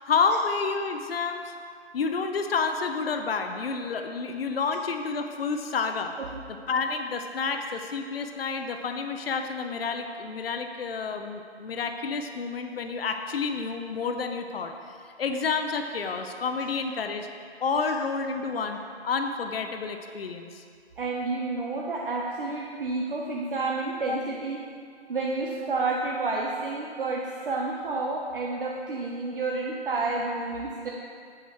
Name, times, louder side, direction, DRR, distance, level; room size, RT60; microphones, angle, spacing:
voice 1, 0.0-1.5 1.9-6.1 6.7-14.7 15.2-17.3 17.6-18.8 19.0-20.6 24.1-24.2, left 5 dB, 60° left, 6 dB, 0.7 m, -29 dB
voice 2, 21.0-24.6 25.1-30.9, right 3 dB, 55° right, -1 dB, 0.9 m, -30 dB
8.1 x 7.2 x 4.4 m, 2.2 s
figure-of-eight pair, 150°, 33 cm